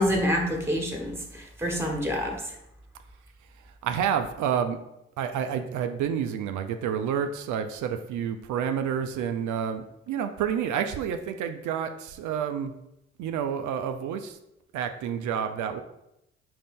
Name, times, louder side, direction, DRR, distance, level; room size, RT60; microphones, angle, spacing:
voice 1, 0.0-2.4, equal, 5° right, 1 dB, 1.3 m, -27 dB
voice 2, 3.8-4.8 5.2-12.7 13.2-14.4 14.7-15.8, right 8 dB, 60° right, 7 dB, 0.5 m, -29 dB
4.9 x 2.6 x 3.6 m, 0.84 s
hypercardioid pair, 50°, 33 cm